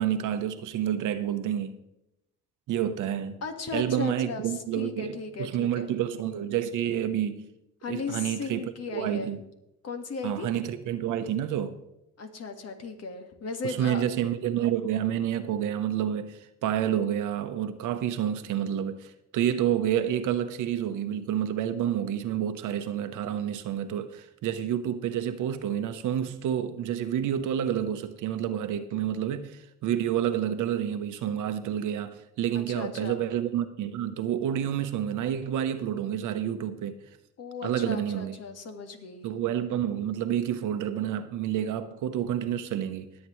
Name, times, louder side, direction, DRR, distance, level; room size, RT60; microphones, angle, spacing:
voice 1, 0.0-1.8 2.7-3.4 3.7-7.5 7.9-9.4 10.2-11.8 13.6-37.0 37.6-38.4 39.2-43.1, right 10 dB, 80° right, 1.0 m, -29 dB
voice 2, 3.4-5.9 7.8-9.3 9.8-10.5 12.2-14.0 32.5-33.2 37.4-39.3, left 4 dB, 55° left, 1.8 m, -36 dB
21.0 x 8.4 x 3.2 m
cardioid pair, 90°, 30 cm